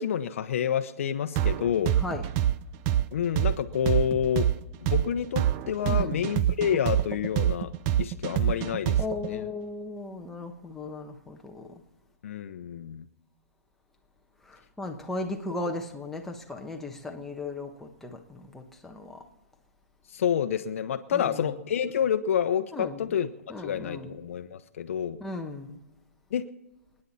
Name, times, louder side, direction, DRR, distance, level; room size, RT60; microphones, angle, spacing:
voice 1, 0.0-2.0 3.1-4.5 4.8-7.7 8.0-9.0 9.3-9.4 12.2-13.0 20.1-23.3 23.6-25.2 26.3-26.4, left 8 dB, 60° left, 0.9 m, -28 dB
sound 1, 1.4-9.3, right 11 dB, 25° right, 0.5 m, -25 dB
voice 2, 5.8-6.3 9.0-11.8 14.4-19.2 21.1-21.6 22.7-23.1 23.5-24.2 25.2-25.8, left 2 dB, 5° left, 1.2 m, -37 dB
28.0 x 9.9 x 4.2 m
hypercardioid pair, 160°, 8 cm